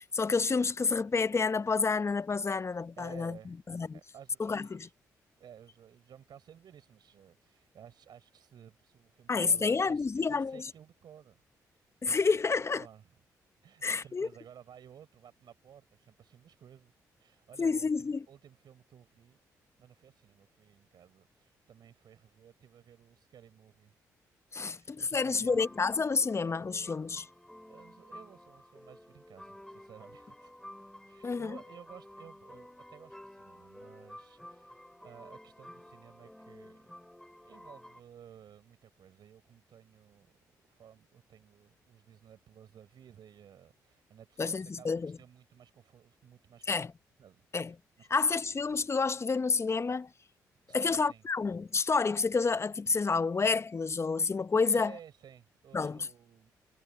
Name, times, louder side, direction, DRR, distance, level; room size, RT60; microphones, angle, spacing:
voice 1, 0.0-3.4 3.7-4.0 4.4-4.9 9.3-10.6 12.0-12.9 13.8-14.3 17.6-18.2 24.5-27.3 31.2-31.6 44.4-45.2 46.7-46.9 47.5-47.7 48.1-50.1 50.7-54.9 55.7-56.1, left 4 dB, 35° left, 0.9 m, -29 dB
voice 2, 3.0-3.6 3.9-4.9 5.4-11.4 11.7-12.2 12.7-13.0 13.6-19.4 19.8-23.9 24.6-25.6 27.7-30.5 31.0-36.9 37.4-46.9 47.2-48.1 50.7-51.2 54.6-56.5, right 9 dB, 65° right, 6.0 m, -55 dB
sound 1, 25.5-38.0, left 1 dB, 5° left, 2.5 m, -52 dB
supercardioid pair, 50°, 8 cm